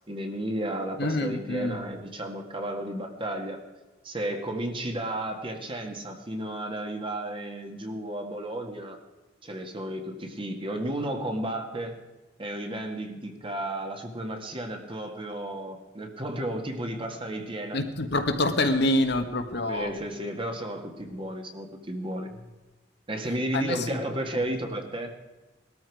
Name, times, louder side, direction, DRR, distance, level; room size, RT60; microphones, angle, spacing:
voice 1, 0.1-3.6 4.0-9.0 9.4-12.0 12.4-17.8 19.7-22.3 23.1-25.1, right 1 dB, 30° right, 4 dB, 1.8 m, -33 dB
voice 2, 1.0-1.8 17.7-19.9 23.5-24.0 24.3-24.4, left 1 dB, 60° left, 6 dB, 1.4 m, -26 dB
19.5 x 13.5 x 4.8 m, 1.2 s
head